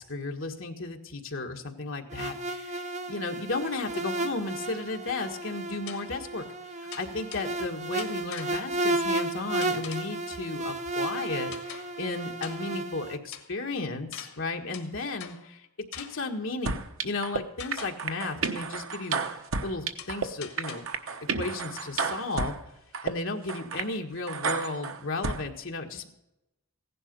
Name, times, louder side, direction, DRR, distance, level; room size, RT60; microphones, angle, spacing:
voice 1, 0.0-6.4 7.0-15.7 15.9-19.2 19.6-20.8 21.3-22.6 23.0-26.1, left 3 dB, 65° left, 3 dB, 1.6 m, -34 dB
sound 1, 2.1-13.2, right 2 dB, 30° right, 0.8 m, -33 dB
sound 2, 4.5-4.6 5.9-6.3 6.9-7.6 8.0-8.8 9.6-10.2 11.5-12.1 12.4-12.9 13.3-13.6 14.1-15.6 15.9-16.4 17.6-18.1 18.4-18.8 20.0-21.0, left 9 dB, 80° left, 1.6 m, -45 dB
sound 3, 16.7-17.4 17.7-20.3 20.6-22.6 22.9-23.1 23.5-23.9 24.3-25.4, right 4 dB, 70° right, 1.1 m, -31 dB
16.0 x 11.0 x 5.4 m, 0.89 s
head